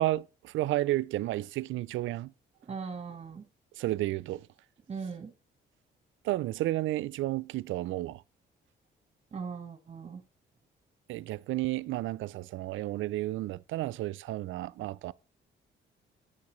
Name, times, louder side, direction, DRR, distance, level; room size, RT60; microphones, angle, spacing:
voice 1, 0.0-2.3 3.7-4.5 6.2-8.2 11.1-15.1, right 16 dB, 80° right, 0.4 m, -32 dB
voice 2, 2.7-3.5 4.9-5.3 9.3-10.2, right 5 dB, 35° right, 1.3 m, -39 dB
8.7 x 8.5 x 3.1 m
cardioid pair, 90°, 20 cm